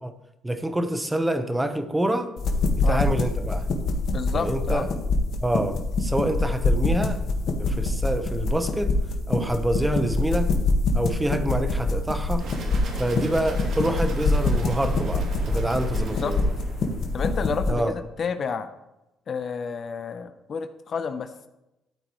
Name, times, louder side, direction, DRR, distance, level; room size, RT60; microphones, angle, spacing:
voice 1, 0.4-2.3 2.8-3.7 4.3-4.9 5.4-7.2 7.6-8.9 9.3-10.5 10.9-12.4 13.0-16.5 17.7-17.9, right 1 dB, 10° right, 8 dB, 1.1 m, -26 dB
sound 1, 2.4-17.7, left 2 dB, 65° left, 1.7 m, -25 dB
voice 2, 4.1-4.9 7.6-7.8 13.1-13.3 16.0-16.4 17.1-18.7 19.3-21.3, left 6 dB, 50° left, 10 dB, 0.8 m, -30 dB
sound 2, 12.4-17.4, right 3 dB, 70° right, 2.9 m, -36 dB
13.0 x 8.9 x 3.2 m, 0.92 s
cardioid pair, 90°, 0 cm